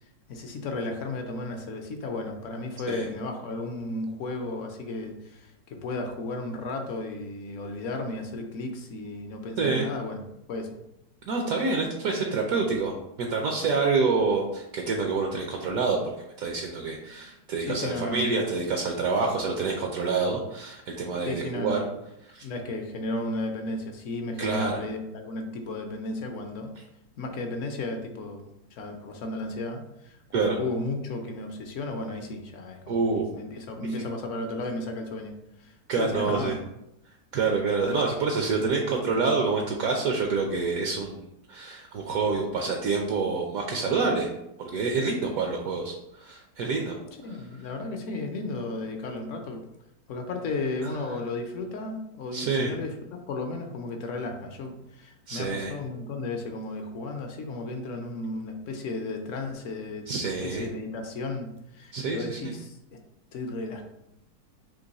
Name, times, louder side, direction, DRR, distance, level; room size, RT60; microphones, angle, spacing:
voice 1, 0.3-10.2 10.5-10.7 17.6-18.4 21.3-21.9 22.4-26.7 27.2-35.3 35.6-36.6 47.2-49.6 50.1-62.8 63.3-63.8, left 2 dB, 65° left, 4 dB, 0.8 m, -34 dB
voice 2, 9.6-9.9 11.3-16.0 16.4-21.8 22.2-22.4 24.4-24.8 30.3-30.6 32.9-33.2 35.9-36.5 37.3-41.2 41.5-44.3 44.6-47.0 52.3-52.7 55.3-55.7 60.1-60.7 61.9-62.5, right 4 dB, 70° right, 1 dB, 1.0 m, -27 dB
3.8 x 2.9 x 4.0 m, 0.84 s
omnidirectional pair, 1.7 m